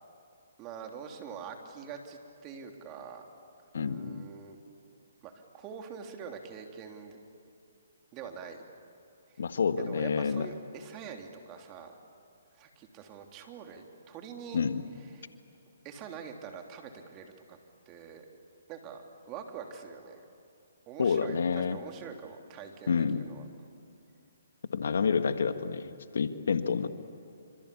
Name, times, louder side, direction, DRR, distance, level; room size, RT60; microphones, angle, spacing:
voice 1, 0.6-3.2 3.7-4.6 5.2-7.2 8.1-8.6 9.9-12.0 12.6-14.6 15.1-15.3 15.8-17.6 17.9-18.3 18.7-20.2 20.9-23.4, right 6 dB, 25° right, 3 dB, 3.1 m, -44 dB
voice 2, 3.7-4.2 9.4-10.5 14.5-14.8 21.0-21.8 22.9-23.3 24.7-26.9, left 6 dB, 70° left, 9 dB, 1.6 m, -28 dB
27.0 x 26.0 x 8.5 m, 2.6 s
hypercardioid pair, 140°, 0 cm